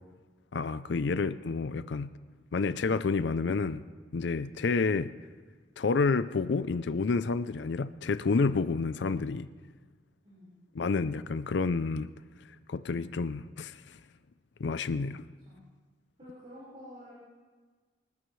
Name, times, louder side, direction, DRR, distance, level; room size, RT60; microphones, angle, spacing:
voice 1, 0.5-2.1 2.5-3.8 4.1-5.2 5.8-9.5 10.7-12.1 12.7-14.0 14.6-15.2, left 4 dB, 70° left, 14 dB, 0.5 m, -29 dB
voice 2, 10.2-10.5 15.4-15.6 16.2-17.2, equal, 35° right, -9 dB, 4.7 m, -49 dB
26.0 x 13.0 x 3.2 m, 1.4 s
head